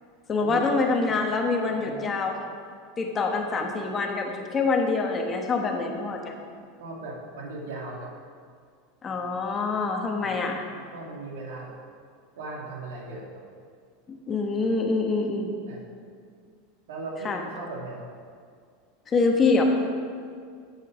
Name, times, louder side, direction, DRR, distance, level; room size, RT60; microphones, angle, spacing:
voice 1, 0.3-2.5 3.0-6.4 9.0-10.6 14.1-15.5 17.2-17.4 19.1-19.6, left 3 dB, 25° left, 2 dB, 1.2 m, -25 dB
voice 2, 1.7-2.1 6.8-8.1 10.2-10.3 10.9-11.8 12.4-13.3 14.6-14.7 15.6-15.8 16.9-18.1, right 2 dB, 85° right, -2 dB, 2.3 m, -38 dB
8.4 x 7.4 x 6.2 m, 2.1 s
supercardioid pair, 130°, 0 cm